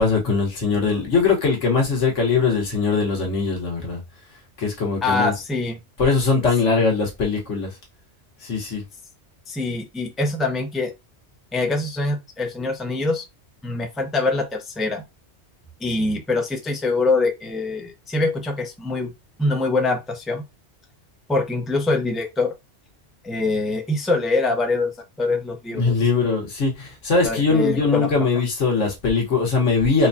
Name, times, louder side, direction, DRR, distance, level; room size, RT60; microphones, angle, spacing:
voice 1, 0.0-4.0 4.6-5.3 6.0-7.8 8.4-8.8 25.7-30.1, left 4 dB, 90° left, 1.6 m, -21 dB
voice 2, 5.0-5.8 9.5-10.9 11.5-13.2 13.6-15.0 15.8-19.1 19.4-20.4 21.3-22.5 23.2-25.9 27.2-28.1, left 3 dB, ahead, 0.5 m, -24 dB
4.4 x 2.3 x 2.6 m
omnidirectional pair, 1.2 m